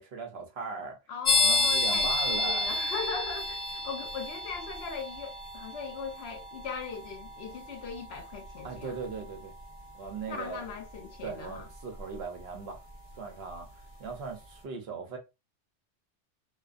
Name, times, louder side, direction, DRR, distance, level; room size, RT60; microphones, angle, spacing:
voice 1, 0.0-1.0 1.3-2.7 8.6-9.5 9.9-10.6 11.2-12.8 13.2-13.7 14.0-15.2, right 4 dB, 65° right, 0.9 m, -38 dB
voice 2, 1.1-9.0 10.3-11.7, left 5 dB, 65° left, 0.8 m, -39 dB
sound 1, 1.2-13.8, left 2 dB, 35° left, 0.9 m, -33 dB
2.5 x 2.4 x 2.3 m
omnidirectional pair, 1.2 m